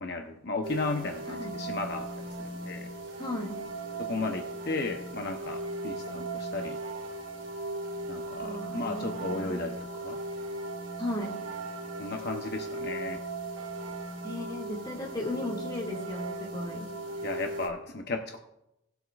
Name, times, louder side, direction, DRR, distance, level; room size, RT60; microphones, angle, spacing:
voice 1, 0.0-2.1 2.4-2.9 4.0-6.8 8.1-10.2 12.0-13.2 17.2-18.4, left 3 dB, 55° left, 3 dB, 0.7 m, -35 dB
sound 1, 0.6-17.7, right 2 dB, 85° right, 2.1 m, -37 dB
voice 2, 3.2-3.6 8.4-9.6 11.0-11.4 14.2-16.9, left 1 dB, 25° left, -1 dB, 2.0 m, -36 dB
18.5 x 7.9 x 2.4 m, 0.87 s
head